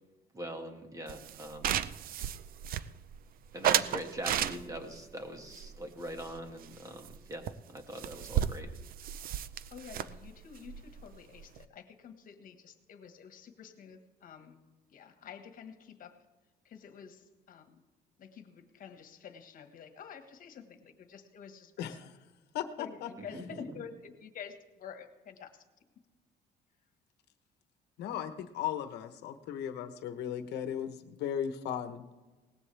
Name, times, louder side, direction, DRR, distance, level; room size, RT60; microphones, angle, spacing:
voice 1, 0.3-1.8 3.5-8.7 23.2-23.8, right 1 dB, 20° right, 5 dB, 1.9 m, -42 dB
sound 1, 1.1-3.2 3.6-4.9 5.5-6.8 7.0-7.2 7.5-7.6 7.8-11.6, right 10 dB, 60° right, 0.6 m, -33 dB
voice 2, 9.7-14.6 14.9-16.2 16.6-17.8 18.2-21.9 22.8-25.5, left 7 dB, 55° left, 7 dB, 1.6 m, -49 dB
voice 3, 21.8-22.1 22.5-23.1 28.0-32.0, left 9 dB, 80° left, 9 dB, 1.1 m, -36 dB
19.0 x 15.5 x 3.4 m, 1.2 s
cardioid pair, 110°, 17 cm